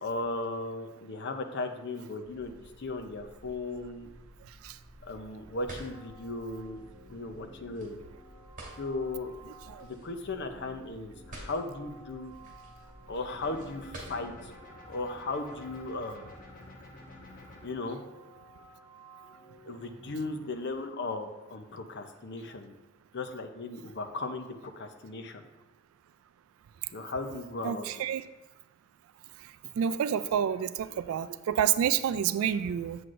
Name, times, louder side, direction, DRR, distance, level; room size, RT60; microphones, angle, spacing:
voice 1, 0.0-4.1 5.0-6.8 7.1-8.0 8.8-9.3 9.8-12.3 13.1-14.5 14.9-16.3 17.6-18.0 19.6-22.7 23.1-25.4 26.9-27.9, left 2 dB, 55° left, 7 dB, 0.7 m, -36 dB
sound 1, 2.2-14.5, right 1 dB, 40° right, 2.2 m, -50 dB
sound 2, 5.9-20.7, right 1 dB, 5° right, 2.1 m, -54 dB
sound 3, 13.3-17.7, left 1 dB, 40° left, 1.5 m, -51 dB
voice 2, 27.6-28.2 29.8-33.0, right 9 dB, 75° right, 14 dB, 0.3 m, -28 dB
7.8 x 7.6 x 2.5 m, 1.1 s
head